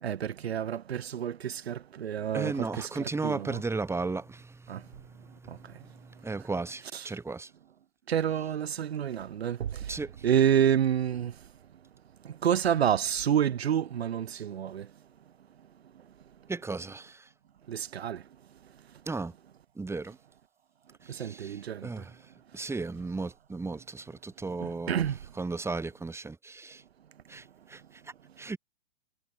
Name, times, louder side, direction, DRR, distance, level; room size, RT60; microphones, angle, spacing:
voice 1, 0.0-3.6 4.7-4.8 5.5-5.8 6.9-7.1 8.1-11.4 12.2-14.9 17.7-18.2 21.1-22.0 24.6-25.2, right 9 dB, 75° right, 1.6 m, -29 dB
voice 2, 2.3-4.6 6.2-7.5 9.9-10.1 16.5-17.2 19.1-19.3 19.8-20.2 21.1-22.1 22.5-25.0 25.4-26.8 27.3-27.4 27.7-27.8 28.4-28.6, right 3 dB, 10° right, 3.3 m, -35 dB
hypercardioid pair, 115°, 32 cm